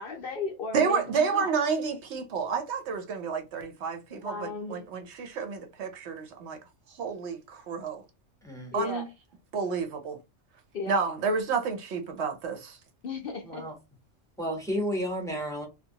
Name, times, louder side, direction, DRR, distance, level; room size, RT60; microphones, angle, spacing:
voice 1, 0.0-1.6 4.1-4.9 8.7-9.1 10.7-11.0 13.0-13.7, left 5 dB, 60° left, 0.6 m, -35 dB
voice 2, 0.7-6.6 7.0-8.0 8.7-9.1 9.5-10.2 10.9-12.8, right 5 dB, 65° right, 0.8 m, -30 dB
voice 3, 8.4-8.7 13.4-13.7 14.4-15.7, equal, 5° left, 0.6 m, -32 dB
2.8 x 2.2 x 2.7 m
omnidirectional pair, 1.3 m